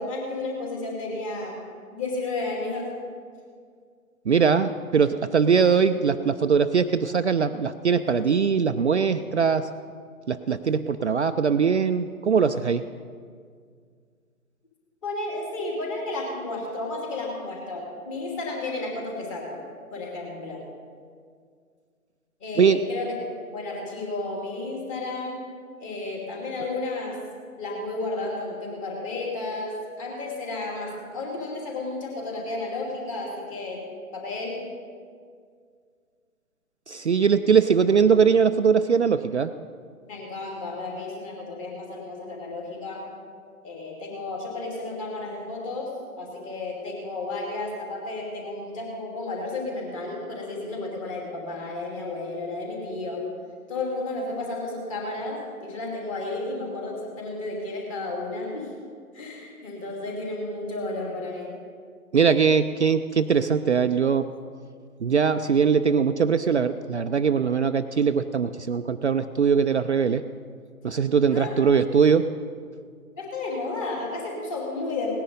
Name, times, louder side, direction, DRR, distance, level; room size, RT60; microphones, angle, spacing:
voice 1, 0.0-1.6 1.9-2.9 15.0-19.6 19.9-20.6 22.4-23.2 23.5-25.4 25.8-27.2 27.6-33.8 34.1-34.7 40.1-43.0 43.6-53.3 53.7-58.7 59.1-61.5 71.3-71.7 73.1-75.1, left 2 dB, 20° left, -1 dB, 2.6 m, -32 dB
voice 2, 4.3-9.7 10.3-12.8 22.6-22.8 36.9-39.5 62.1-64.3 65.0-70.2 70.8-72.3, right 6 dB, 55° right, 9 dB, 0.5 m, -21 dB
18.0 x 10.0 x 5.3 m, 2.1 s
figure-of-eight pair, 145°, 44 cm